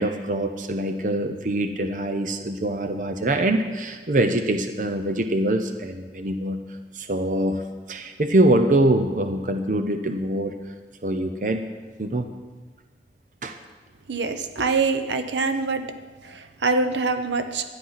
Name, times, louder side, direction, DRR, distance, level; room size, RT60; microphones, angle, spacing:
voice 1, 0.0-6.6 6.9-7.6 7.9-10.6 11.0-11.7 12.0-12.3 13.4-13.6, right 1 dB, 45° right, 7 dB, 0.7 m, -24 dB
voice 2, 14.1-15.8 16.3-17.6, right 4 dB, 90° right, 8 dB, 0.9 m, -24 dB
12.0 x 9.9 x 5.8 m, 1.4 s
head